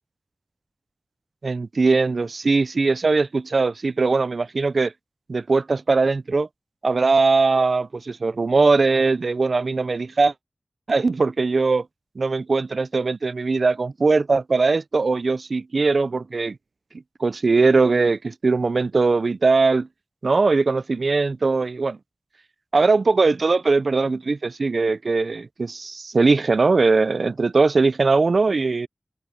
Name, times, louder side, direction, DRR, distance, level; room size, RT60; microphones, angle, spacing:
voice 1, 1.4-4.9 5.3-6.5 6.8-10.3 10.9-11.8 12.2-16.6 17.2-19.9 20.2-22.0 22.7-28.9, right 3 dB, 70° right, 0.5 m, -20 dB
open air
cardioid pair, 45°, 0 cm